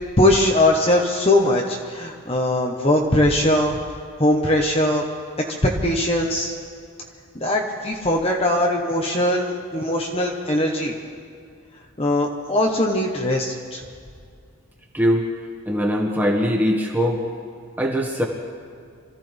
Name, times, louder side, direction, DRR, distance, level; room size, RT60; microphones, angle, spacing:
voice 1, 0.2-3.8 4.2-5.0 5.6-6.5 7.3-10.9 12.0-13.8, left 1 dB, 25° left, 0 dB, 1.1 m, -20 dB
voice 2, 14.9-15.3 15.7-17.2 17.8-18.2, equal, 10° right, -1 dB, 1.7 m, -21 dB
26.0 x 15.0 x 3.5 m, 2.3 s
head